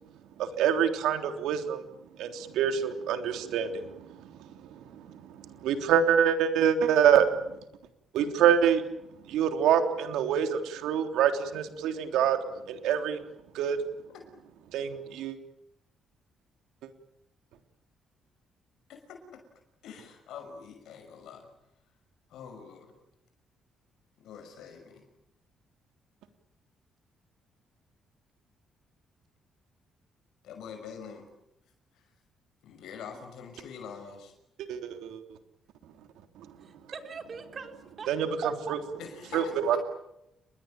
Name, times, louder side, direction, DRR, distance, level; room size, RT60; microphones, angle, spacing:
voice 1, 0.4-1.8 2.2-7.6 8.1-8.8 9.2-12.4 12.7-13.2 13.5-13.8 14.7-15.4 34.7-35.2 36.4-36.5 38.1-38.8 39.3-39.8, right 8 dB, 90° right, 7 dB, 3.4 m, -26 dB
voice 2, 18.9-19.4 19.8-21.5 22.3-22.9 24.2-25.0 30.4-31.3 32.6-34.3 39.0-39.8, left 6 dB, 80° left, 5 dB, 6.0 m, -45 dB
voice 3, 36.6-38.1 38.4-38.7, right 5 dB, 45° right, 6 dB, 4.6 m, -41 dB
29.5 x 22.0 x 9.1 m, 0.84 s
cardioid pair, 90°, 0 cm